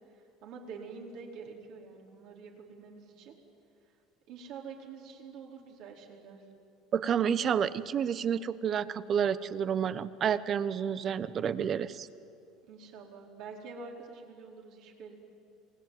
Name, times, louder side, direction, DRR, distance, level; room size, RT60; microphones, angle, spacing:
voice 1, 0.1-3.3 4.3-6.4 10.8-10.9 12.7-15.2, right 5 dB, 65° right, 0 dB, 4.6 m, -47 dB
voice 2, 6.9-12.1, right 8 dB, 40° right, 15 dB, 1.0 m, -30 dB
27.5 x 19.0 x 9.3 m, 2.6 s
supercardioid pair, 105°, 0 cm